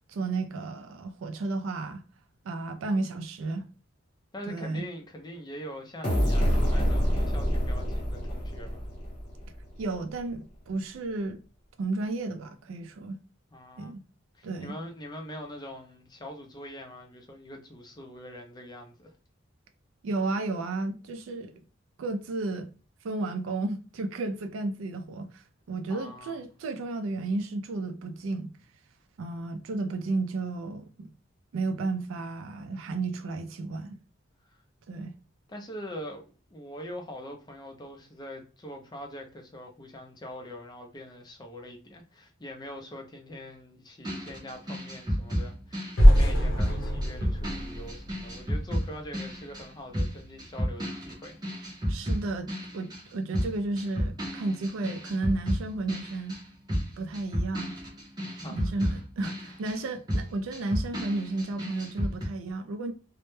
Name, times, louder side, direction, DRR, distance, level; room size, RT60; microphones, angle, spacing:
voice 1, 0.1-2.0 2.4-3.7 4.5-4.9 9.8-11.4 11.8-13.2 13.8-14.0 14.4-14.8 20.0-21.6 22.0-22.7 23.0-28.5 29.2-31.1 31.5-34.0 34.9-35.1 51.9-56.4 57.0-57.8 58.5-62.9, right 2 dB, 80° right, 0.3 m, -33 dB
voice 2, 4.3-8.8 13.5-14.0 14.3-19.1 25.9-26.4 34.5-34.6 35.5-51.4 51.6-51.8 58.2-58.9 59.2-59.3, equal, 20° left, 0.4 m, -43 dB
sound 1, 6.0-9.7, equal, 40° left, 0.9 m, -26 dB
sound 2, 44.0-53.1 53.3-62.3, equal, 20° right, 0.6 m, -32 dB
sound 3, 46.0-49.0, equal, 70° left, 0.6 m, -22 dB
2.1 x 2.1 x 2.9 m
head